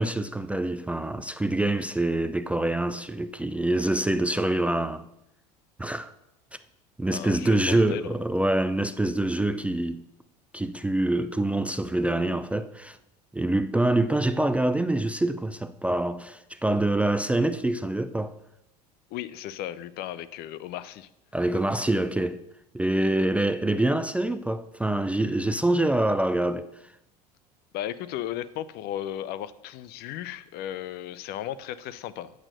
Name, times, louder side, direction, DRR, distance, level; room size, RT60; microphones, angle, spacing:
voice 1, 0.0-5.1 5.8-6.1 7.0-10.0 10.5-13.0 13.3-18.4 21.3-22.4 22.7-26.7, right 1 dB, 5° right, 0.4 m, -25 dB
voice 2, 7.1-8.1 19.1-21.1 27.7-32.3, left 12 dB, 50° left, 0.6 m, -35 dB
8.8 x 6.5 x 6.4 m
hypercardioid pair, 75°, 21 cm